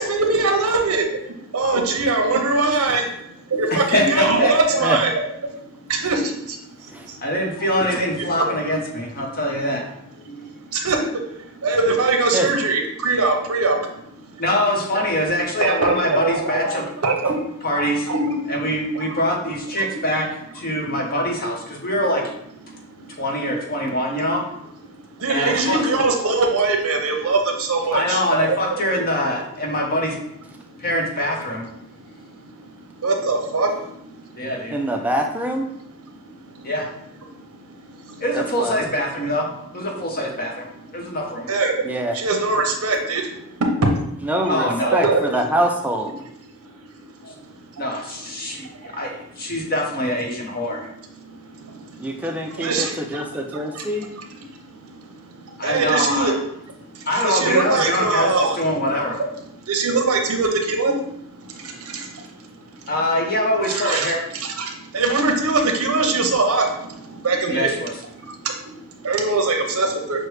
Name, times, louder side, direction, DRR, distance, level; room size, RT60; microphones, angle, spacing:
voice 1, 0.0-5.1 5.4-7.2 8.2-8.5 10.2-14.4 15.6-18.5 18.9-19.1 19.9-20.0 22.7-23.2 24.9-28.8 30.6-30.8 31.8-34.5 35.0-35.3 35.7-36.7 37.3-38.2 40.9-41.1 41.5-43.6 44.8-45.4 46.1-46.9 47.3-47.5 47.7-47.8 48.2-49.0 50.3-50.4 51.1-56.3 56.7-58.6 59.6-62.9 63.7-70.3, right 3 dB, 75° right, 3 dB, 0.7 m, -24 dB
voice 2, 3.9-4.5 7.2-10.5 14.4-16.8 17.6-18.1 18.5-20.3 20.5-22.2 23.2-24.4 25.3-25.8 27.9-30.2 30.8-31.6 34.4-34.8 36.6-36.9 38.2-39.5 39.7-40.6 40.9-41.5 44.5-45.0 47.2-47.3 47.8-50.9 55.6-56.3 57.1-58.3 58.6-59.2 62.9-64.2 67.5-67.9, equal, 40° left, 0 dB, 0.8 m, -23 dB
voice 3, 34.7-35.6 38.3-38.7 41.9-42.1 44.3-45.0 45.3-46.1 52.0-54.1, right 1 dB, 5° right, 2 dB, 0.3 m, -24 dB
6.2 x 2.1 x 3.1 m, 0.76 s
head